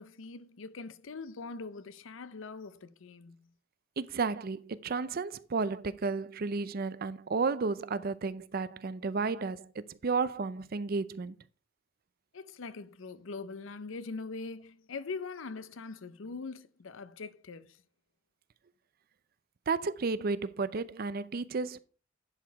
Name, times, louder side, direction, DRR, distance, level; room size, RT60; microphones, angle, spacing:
voice 1, 0.0-3.5 12.3-17.8, left 4 dB, 75° left, 0.6 m, -42 dB
voice 2, 4.0-11.4 19.7-21.8, right 4 dB, 50° right, 0.5 m, -32 dB
11.0 x 4.9 x 4.6 m
head